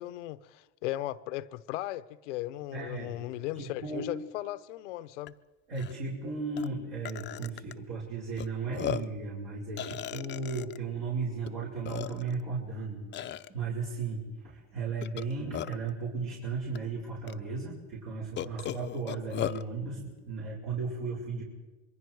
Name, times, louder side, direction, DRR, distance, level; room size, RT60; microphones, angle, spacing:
voice 1, 0.0-5.4, left 15 dB, 85° left, 0.8 m, -37 dB
voice 2, 2.7-4.1 5.7-21.4, right 4 dB, 70° right, 5.6 m, -35 dB
Burping eructation, 5.3-5.4 5.7-5.9 6.6-6.7 7.0-7.7 8.4-8.5 8.7-9.2 9.8-10.8 11.5-11.6 11.8-12.4 13.1-13.5 15.0-15.9 16.7-16.8 17.3-17.4 18.4-19.6, left 11 dB, 30° left, 0.6 m, -36 dB
26.0 x 22.5 x 4.7 m
supercardioid pair, 105°, 35 cm